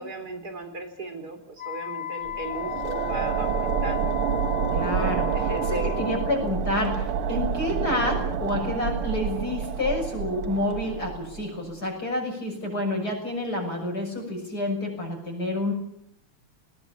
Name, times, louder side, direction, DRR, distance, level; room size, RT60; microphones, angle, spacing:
voice 1, 0.0-4.4 5.0-5.9 7.3-7.4, right 2 dB, 45° right, 8 dB, 4.4 m, -36 dB
Wind instrument woodwind instrument, 1.6-6.4, left 13 dB, 20° left, 2.8 m, -35 dB
sound 1, 2.3-11.6, right 7 dB, 85° right, 2.3 m, -28 dB
voice 2, 4.7-5.3 5.6-15.7, left 1 dB, 45° left, 1 dB, 7.0 m, -29 dB
21.0 x 20.5 x 8.6 m, 0.73 s
omnidirectional pair, 2.4 m